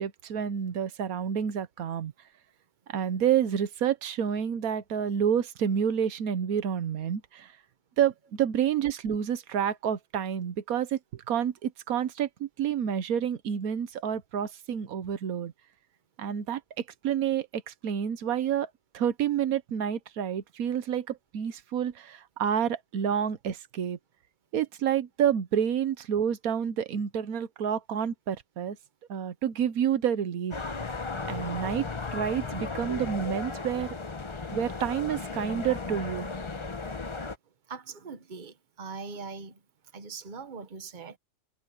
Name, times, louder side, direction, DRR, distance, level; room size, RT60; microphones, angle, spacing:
voice 1, 0.0-2.1 2.9-7.5 8.0-15.5 16.2-16.6 17.0-24.0 24.5-28.8 29.1-30.5 31.3-31.9 32.1-33.9 34.5-36.3, right 9 dB, 90° right, 1.4 m, -29 dB
sound 1, 30.5-37.4, left 3 dB, 25° left, 0.9 m, -35 dB
voice 2, 37.7-39.6 39.9-41.2, right 4 dB, 35° right, 1.2 m, -41 dB
omnidirectional pair, 1.5 m